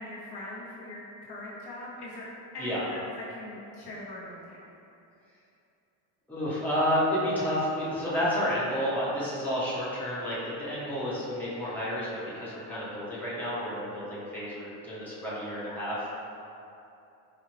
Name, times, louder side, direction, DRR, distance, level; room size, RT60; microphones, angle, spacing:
voice 1, 0.0-2.3 2.5-4.7, left 1 dB, 55° left, -6 dB, 0.9 m, -41 dB
voice 2, 6.3-12.1 12.3-16.0, equal, 5° left, -10 dB, 1.3 m, -30 dB
4.7 x 2.4 x 3.2 m, 2.8 s
supercardioid pair, 85°, 48 cm